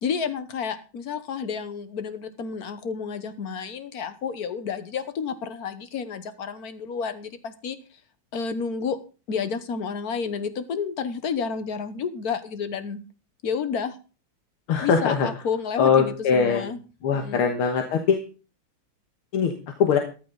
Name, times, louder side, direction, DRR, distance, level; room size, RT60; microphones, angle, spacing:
voice 1, 0.0-7.8 8.3-9.0 9.3-13.0 13.4-14.0 14.8-16.8 17.1-17.5, left 6 dB, 50° left, 11 dB, 1.4 m, -30 dB
voice 2, 14.7-15.3 15.8-16.6 17.0-18.2 19.3-19.5 19.8-20.0, left 6 dB, 85° left, 5 dB, 2.2 m, -21 dB
14.0 x 11.5 x 3.9 m, 0.35 s
omnidirectional pair, 2.3 m